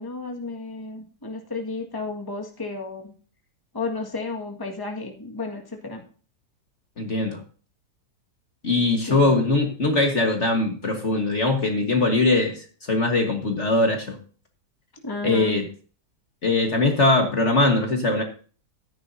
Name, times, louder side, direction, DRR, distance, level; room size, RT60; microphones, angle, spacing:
voice 1, 0.0-3.1 3.7-6.0 9.1-9.3 15.0-15.6, left 3 dB, 15° left, 2 dB, 1.7 m, -33 dB
voice 2, 7.0-7.4 8.6-14.2 15.2-15.6 16.4-18.2, left 2 dB, 45° left, 3 dB, 1.7 m, -21 dB
14.5 x 10.0 x 2.7 m, 0.40 s
omnidirectional pair, 1.8 m